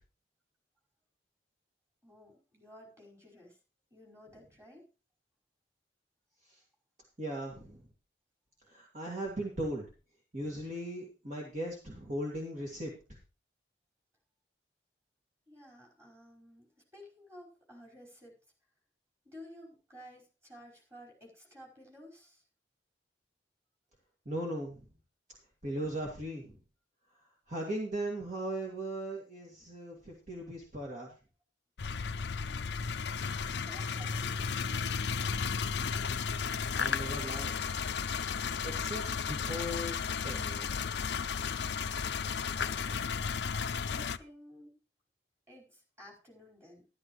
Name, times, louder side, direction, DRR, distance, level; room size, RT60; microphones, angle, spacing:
voice 1, 2.0-3.6 3.9-4.9 15.5-18.4 19.2-22.4 33.5-34.5 42.6-43.2 43.8-44.8 45.5-46.9, left 1 dB, 15° right, -1 dB, 5.1 m, -54 dB
voice 2, 7.2-7.8 8.7-9.9 10.3-12.9 24.3-24.9 25.6-26.6 27.5-31.1 36.7-37.7 38.6-40.0 40.2-40.7, right 1 dB, 40° right, -2 dB, 2.4 m, -38 dB
sound 1, 31.8-44.2, left 6 dB, 65° left, 0.5 m, -34 dB
12.5 x 12.5 x 3.2 m, 0.32 s
head